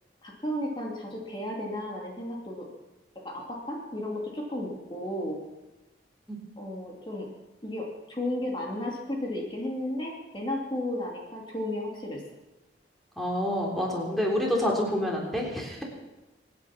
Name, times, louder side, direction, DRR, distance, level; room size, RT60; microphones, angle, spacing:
voice 1, 0.2-2.7 3.2-5.4 6.6-7.3 7.6-12.2 14.3-14.4, left 1 dB, 25° left, -2 dB, 2.6 m, -34 dB
voice 2, 13.2-15.8, left 1 dB, ahead, -2 dB, 3.6 m, -27 dB
25.0 x 9.7 x 5.9 m, 1.0 s
head